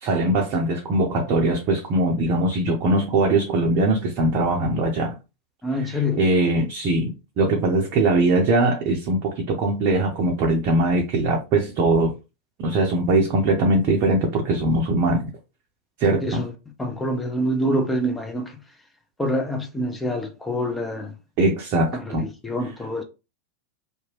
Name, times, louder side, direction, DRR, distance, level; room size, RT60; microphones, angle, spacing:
voice 1, 0.0-5.2 5.8-7.1 7.4-12.1 12.6-15.2 16.0-16.4 21.4-22.3, right 2 dB, 40° right, 0.6 m, -21 dB
voice 2, 5.6-6.2 16.2-16.5 16.8-18.5 19.2-21.1 21.9-23.0, equal, 10° left, 0.5 m, -26 dB
2.8 x 2.2 x 2.9 m
figure-of-eight pair, 90°, 0 cm